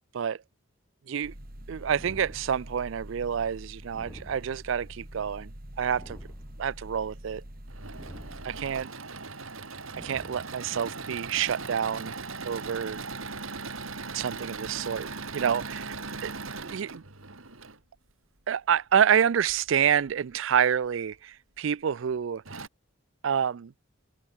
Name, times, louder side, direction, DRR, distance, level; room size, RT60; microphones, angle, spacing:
sound 1, 1.2-8.8, equal, 45° right, 3.5 m, -45 dB
voice 1, 1.7-5.5 5.8-6.2 6.6-7.4 8.4-8.9 10.0-12.1 12.4-13.0 14.1-16.0 16.2-16.3 16.6-17.0 18.5-22.4 23.2-23.7, right 8 dB, 65° right, 0.4 m, -28 dB
sound 2, 1.9-3.0 3.9-5.0 5.9-6.9 7.9-8.9 9.9-10.9, equal, 10° left, 1.3 m, -49 dB
Engine / Mechanisms, 7.5-17.8 19.4-20.1 20.7-20.8 21.1-21.2 22.1-22.2 22.4-22.7, right 4 dB, 80° right, 3.6 m, -39 dB
head